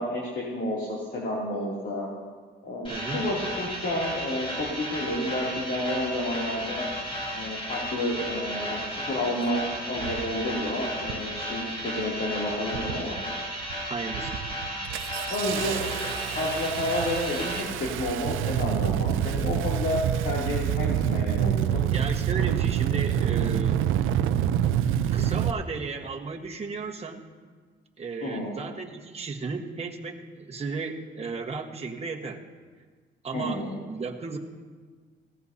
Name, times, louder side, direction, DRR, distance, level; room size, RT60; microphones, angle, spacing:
voice 1, 0.0-2.1 2.6-6.8 7.3-9.6 9.9-13.2 15.3-15.8 16.3-21.8 28.2-28.5 33.3-33.7, left 1 dB, 60° left, -5 dB, 3.0 m, -30 dB
sound 1, 2.8-17.6, equal, 30° left, 3.8 m, -34 dB
voice 2, 2.9-3.3 13.9-14.4 21.9-23.9 25.1-27.2 28.0-32.4 33.2-34.4, right 4 dB, 30° right, 1 dB, 1.4 m, -34 dB
Engine starting, 9.2-9.3 10.0-10.3 11.0-11.3 11.7-12.2 12.7-13.2 13.6-13.8 14.1-25.5, right 10 dB, 90° right, 0.5 m, -27 dB
17.0 x 15.5 x 2.8 m, 1.5 s
cardioid pair, 90°, 20 cm